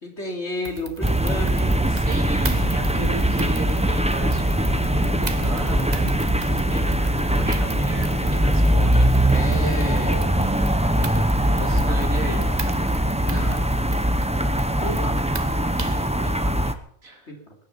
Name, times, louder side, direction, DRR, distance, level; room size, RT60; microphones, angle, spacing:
voice 1, 0.0-1.8 9.3-10.2 11.5-12.0 13.2-13.6 14.7-15.2 17.3-17.5, left 1 dB, 55° left, 2 dB, 3.7 m, -32 dB
sound 1, 0.6-16.1, right 4 dB, 35° right, 1.3 m, -39 dB
sound 2, 1.0-16.7, right 1 dB, 5° right, 0.8 m, -21 dB
voice 2, 1.9-4.8 5.2-6.1 6.4-9.1 11.5-12.8 13.4-13.7 16.3-16.7 17.0-17.4, right 2 dB, 90° right, 1 dB, 3.6 m, -36 dB
sound 3, 2.1-10.8, left 1 dB, 25° left, 1.8 m, -38 dB
22.0 x 10.5 x 5.8 m, 0.63 s
omnidirectional pair, 1.4 m